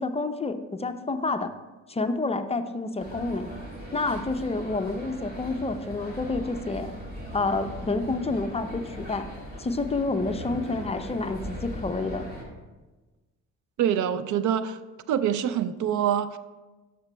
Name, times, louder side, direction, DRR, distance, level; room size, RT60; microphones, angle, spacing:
voice 1, 0.0-1.5 1.9-3.5 3.9-6.9 7.3-9.3 9.6-12.3, left 3 dB, 20° left, 8 dB, 0.4 m, -29 dB
sound 1, 3.0-12.4, equal, 30° right, 2.3 m, -39 dB
voice 2, 13.8-14.8 15.1-16.4, right 9 dB, 75° right, 13 dB, 0.5 m, -25 dB
12.0 x 6.7 x 2.2 m, 1.2 s
cardioid pair, 90°, 30 cm